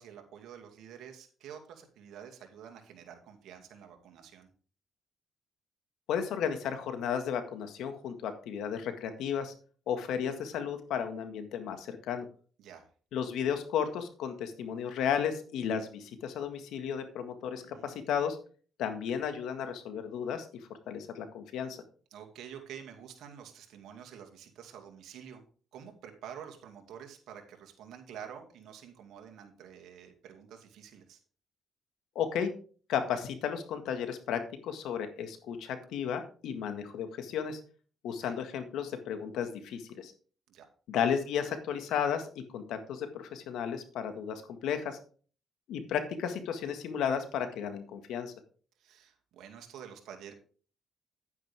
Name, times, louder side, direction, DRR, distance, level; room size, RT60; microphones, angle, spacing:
voice 1, 0.0-4.5 12.6-12.9 17.6-18.0 22.1-25.4 25.7-31.2 38.2-38.4 40.5-40.7 48.8-50.3, right 8 dB, 80° right, 4 dB, 2.4 m, -48 dB
voice 2, 6.1-9.5 9.9-12.3 13.1-18.4 18.8-20.5 20.9-21.8 32.2-32.5 32.9-37.6 38.0-40.1 40.9-45.0 45.7-48.3, left 8 dB, 85° left, 8 dB, 1.8 m, -33 dB
10.5 x 9.4 x 3.6 m, 0.40 s
cardioid pair, 90°, 0 cm